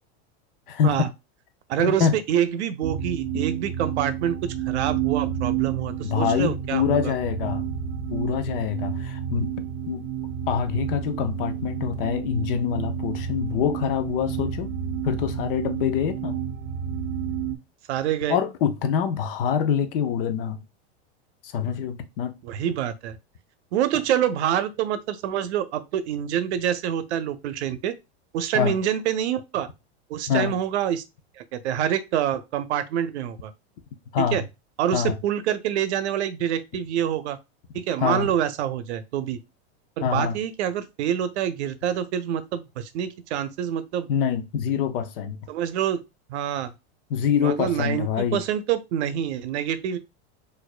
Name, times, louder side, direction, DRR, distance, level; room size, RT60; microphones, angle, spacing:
voice 1, 0.7-1.0 1.8-2.1 3.3-3.4 6.0-7.7 8.1-9.5 9.9-10.1 10.5-14.7 15.0-16.4 18.3-20.6 21.4-22.4 28.5-28.8 30.3-30.6 34.1-34.4 34.9-35.2 38.0-38.3 40.0-40.4 44.1-45.4 47.1-48.4, left 8 dB, 55° left, 0.6 m, -25 dB
voice 2, 1.7-7.1 17.9-18.4 22.4-23.2 23.7-27.9 28.3-29.7 30.1-31.0 31.4-33.5 34.2-34.4 34.8-37.4 37.7-39.4 40.0-44.1 45.5-46.0 46.3-46.7 47.4-50.0, right 10 dB, 80° right, 0.6 m, -26 dB
sound 1, 2.8-17.6, right 9 dB, 25° right, 0.3 m, -30 dB
4.2 x 2.6 x 2.4 m
supercardioid pair, 155°, 33 cm